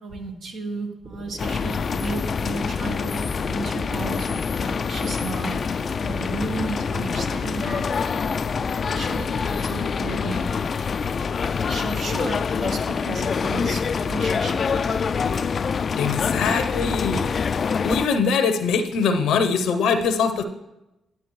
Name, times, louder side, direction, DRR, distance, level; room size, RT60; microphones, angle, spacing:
voice 1, 0.0-5.6 6.0-7.9 8.8-10.6 11.4-15.4, right 3 dB, 70° right, 2 dB, 1.3 m, -34 dB
sound 1, 1.0-9.6, right 2 dB, 40° right, 1.4 m, -42 dB
sound 2, 1.4-18.1, left 6 dB, 50° left, 0.3 m, -25 dB
voice 2, 16.0-17.3 17.8-20.4, left 5 dB, 80° left, 9 dB, 0.7 m, -22 dB
10.5 x 7.5 x 3.1 m, 0.92 s
supercardioid pair, 50°, 0 cm